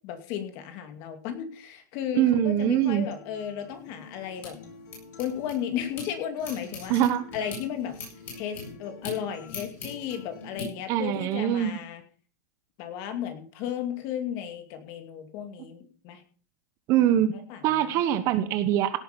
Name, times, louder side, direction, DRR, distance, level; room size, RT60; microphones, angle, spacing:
voice 1, 0.0-4.6 5.2-6.9 7.3-7.9 8.3-12.0 12.8-16.2 17.0-18.0, left 9 dB, 40° left, 6 dB, 2.5 m, -34 dB
voice 2, 2.2-3.1 6.9-7.2 10.9-11.8 16.9-17.4 17.6-19.0, right 11 dB, 30° right, 11 dB, 1.1 m, -23 dB
Acoustic guitar, 2.6-10.6, left 3 dB, 70° left, 6.7 m, -49 dB
sound 1, 3.7-6.1 6.4-10.7, left 3 dB, 20° left, 7.8 m, -41 dB
17.0 x 8.9 x 5.3 m, 0.42 s
supercardioid pair, 160°, 10 cm